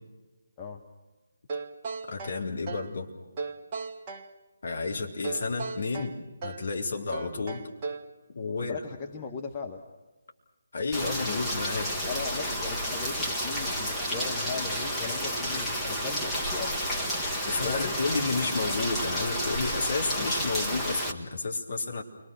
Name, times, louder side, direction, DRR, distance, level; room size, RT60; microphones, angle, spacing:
sound 1, 1.5-3.0 3.4-4.3 5.2-6.7 7.1-8.1, right 4 dB, 25° right, 1.3 m, -37 dB
voice 1, 2.1-3.1 4.6-6.2 6.4-7.7 8.3-8.8 10.7-12.0 17.5-22.0, left 3 dB, 50° left, 1 dB, 3.8 m, -31 dB
voice 2, 8.6-9.8 11.0-11.5 12.0-16.8 17.6-18.0, left 5 dB, 20° left, 2 dB, 1.4 m, -38 dB
Rain, 10.9-21.1, equal, 5° left, 1.7 m, -31 dB
29.5 x 23.0 x 6.3 m, 1.2 s
figure-of-eight pair, 145°, 0 cm